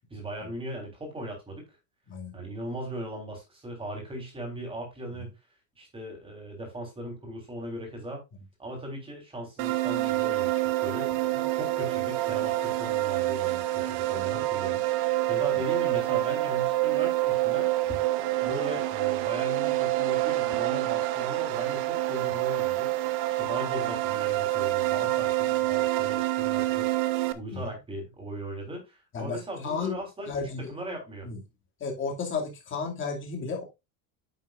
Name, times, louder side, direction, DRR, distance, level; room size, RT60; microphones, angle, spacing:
voice 1, 0.1-1.6 2.3-5.3 5.8-8.2 8.6-11.2 11.5-17.7 18.4-22.9 23.3-31.3, right 1 dB, 10° right, 3.6 m, -38 dB
sound 1, 9.6-27.3, right 16 dB, 60° right, 1.0 m, -27 dB
voice 2, 29.1-30.0 30.3-30.7 31.2-31.4 31.8-33.6, left 5 dB, 25° left, 2.5 m, -33 dB
9.3 x 7.5 x 2.5 m
cardioid pair, 175°, 47 cm